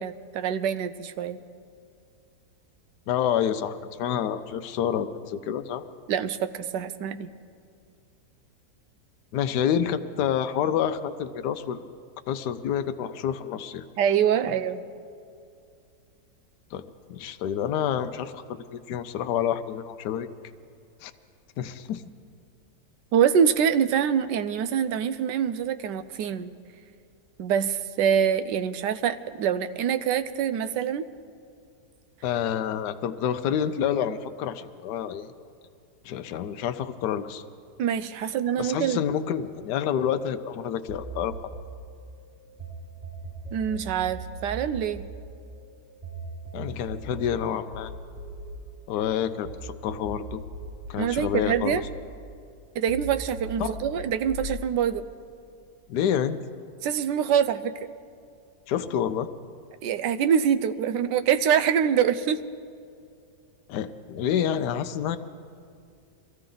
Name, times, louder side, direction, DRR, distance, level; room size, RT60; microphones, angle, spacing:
voice 1, 0.0-1.4 6.1-7.3 14.0-14.8 23.1-26.5 27.4-31.1 37.8-39.0 43.5-45.0 51.0-51.8 52.7-55.1 56.8-57.9 59.8-62.4, right 8 dB, 85° right, 11 dB, 1.3 m, -25 dB
voice 2, 3.1-5.8 9.3-11.9 12.3-13.8 16.7-16.8 17.1-20.3 21.0-21.1 21.6-22.0 32.2-35.3 36.0-37.4 38.6-41.3 46.5-47.9 48.9-50.4 50.9-51.8 53.6-53.7 55.9-56.4 58.7-59.3 63.7-65.2, left 9 dB, 75° left, 9 dB, 1.2 m, -28 dB
sound 1, 40.9-42.7 43.0-49.6 49.9-52.6 52.9-54.5, right 2 dB, 25° right, 5.0 m, -39 dB
22.5 x 15.0 x 3.8 m, 2.4 s
omnidirectional pair, 1.8 m